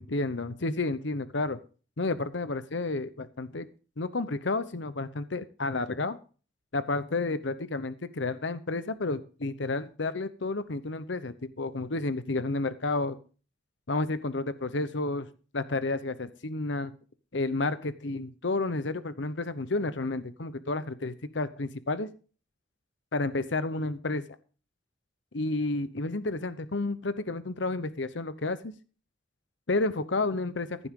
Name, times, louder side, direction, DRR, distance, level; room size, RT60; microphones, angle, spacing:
voice 1, 0.0-1.6 2.0-3.7 4.0-6.2 6.7-13.2 13.9-15.3 15.5-16.9 17.3-22.1 23.1-24.3 25.3-28.7 29.7-30.8, left 2 dB, 70° left, 13 dB, 0.9 m, -31 dB
15.0 x 11.0 x 3.8 m, 0.37 s
head